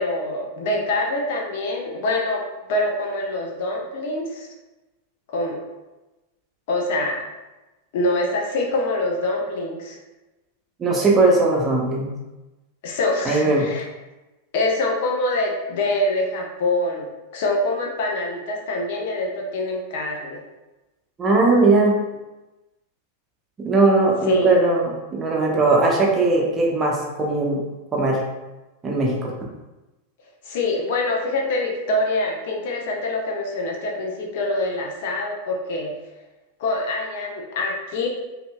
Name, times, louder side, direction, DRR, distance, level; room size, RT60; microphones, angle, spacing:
voice 1, 0.0-2.4 2.7-4.5 5.3-5.6 6.7-7.2 7.9-10.0 12.8-13.8 14.5-20.4 24.3-24.5 30.4-35.9 36.6-38.1, left 2 dB, 50° left, 0 dB, 0.6 m, -25 dB
voice 2, 10.8-12.1 13.2-13.6 21.2-21.9 23.6-27.6 27.9-28.2 28.8-29.3, right 2 dB, 20° right, -2 dB, 0.9 m, -19 dB
5.4 x 2.7 x 2.3 m, 1.1 s
figure-of-eight pair, 90°, 0 cm